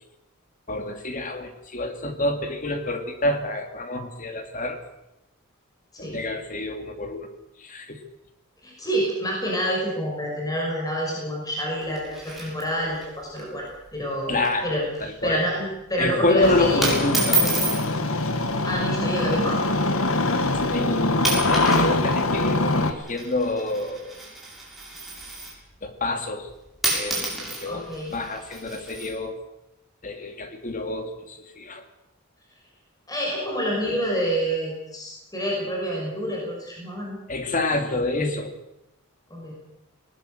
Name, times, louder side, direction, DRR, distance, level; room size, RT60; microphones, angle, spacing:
voice 1, 0.7-4.8 6.0-7.3 7.6-8.0 14.3-15.5 16.0-17.9 20.7-24.2 25.8-26.5 26.9-29.4 30.0-31.8 37.3-38.5, left 2 dB, 35° left, 6 dB, 2.6 m, -27 dB
voice 2, 8.6-13.7 13.9-14.8 15.2-16.9 18.6-19.6 27.7-28.1 33.1-37.2 39.3-39.5, equal, 15° left, -2 dB, 5.9 m, -28 dB
sound 1, 11.8-13.1 13.4-13.5 13.8-14.0 14.4-14.7 15.0-15.3 16.1-16.3 16.8-17.9 18.8-19.1 19.8-19.9 20.6-20.8 21.2-21.9 22.1-25.7 26.5-26.6 26.8-29.1, right 2 dB, ahead, 6.8 m, -29 dB
Engine starting, 16.4-22.9, left 2 dB, 70° left, 1.9 m, -23 dB
20.0 x 19.5 x 8.0 m, 0.89 s
head